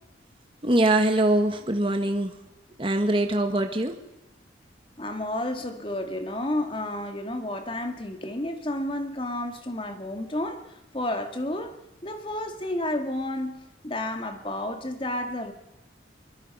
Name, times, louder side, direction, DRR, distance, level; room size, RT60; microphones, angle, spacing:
voice 1, 0.6-2.4 2.8-3.9, right 1 dB, 30° right, 5 dB, 1.5 m, -23 dB
voice 2, 5.0-10.6 10.9-11.7 12.0-15.5, left 1 dB, 30° left, 6 dB, 2.2 m, -31 dB
23.5 x 23.0 x 5.6 m, 0.98 s
head